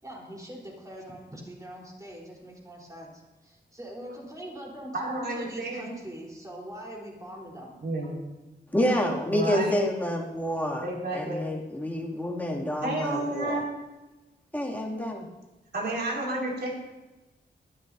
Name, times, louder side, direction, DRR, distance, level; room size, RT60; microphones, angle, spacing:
voice 1, 0.0-7.8, equal, 20° right, -3 dB, 4.1 m, -42 dB
voice 2, 4.9-5.9 7.8-8.2 9.3-9.7 10.8-11.4 12.8-13.6 15.7-16.7, right 2 dB, 65° right, -3 dB, 5.2 m, -31 dB
voice 3, 8.7-10.8 11.1-13.6 14.5-15.3, left 1 dB, 10° left, -3 dB, 2.6 m, -28 dB
20.5 x 13.0 x 2.8 m, 1.1 s
wide cardioid pair, 135°, 19 cm